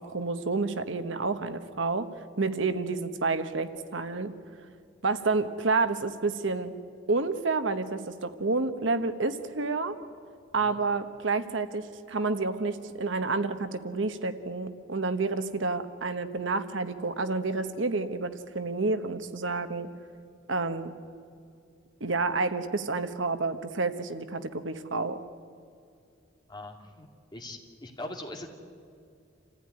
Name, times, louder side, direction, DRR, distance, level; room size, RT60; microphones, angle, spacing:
voice 1, 0.0-2.1 2.4-4.3 5.0-6.7 7.1-10.0 10.5-19.9 20.5-20.9 22.0-25.2, right 3 dB, 75° right, 10 dB, 1.2 m, -29 dB
voice 2, 26.5-28.5, left 1 dB, 20° left, 2 dB, 2.6 m, -41 dB
27.5 x 15.5 x 9.8 m, 2.5 s
head